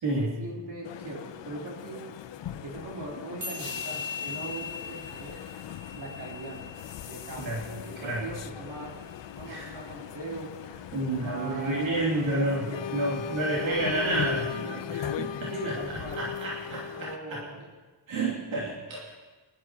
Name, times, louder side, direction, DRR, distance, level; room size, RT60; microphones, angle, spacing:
voice 1, 0.1-2.0 2.6-5.3 5.9-6.6 7.0-9.0 9.4-10.5 11.1-12.8 13.6-14.1 15.5-16.2 16.9-17.7, right 2 dB, 60° right, -4 dB, 3.7 m, -40 dB
sound 1, 0.8-17.2, left 9 dB, 65° left, 0.7 m, -39 dB
sound 2, 3.4-10.0, left 4 dB, 25° right, 5.3 m, -41 dB
voice 2, 10.9-12.6 12.9-17.4 18.1-19.0, right 2 dB, 80° right, -5 dB, 2.8 m, -30 dB
23.5 x 12.0 x 3.0 m, 1.3 s
wide cardioid pair, 145°, 46 cm